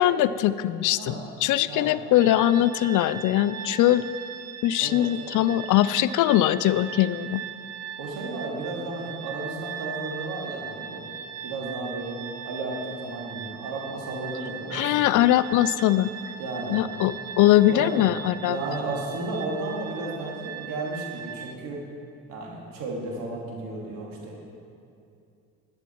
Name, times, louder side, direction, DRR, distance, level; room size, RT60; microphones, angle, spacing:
voice 1, 0.0-4.0 4.6-7.4 14.7-16.1 16.7-18.6, left 13 dB, 65° left, 16 dB, 0.5 m, -21 dB
voice 2, 1.0-1.3 1.6-1.9 4.8-5.1 8.0-11.0 11.4-12.2 12.5-15.2 16.4-17.0 17.6-18.0 18.5-21.8 22.3-24.3, right 2 dB, 85° right, -2 dB, 2.6 m, -33 dB
sound 1, 2.1-21.6, right 8 dB, 55° right, 0.6 m, -39 dB
11.0 x 10.5 x 4.6 m, 2.5 s
cardioid pair, 85°, 33 cm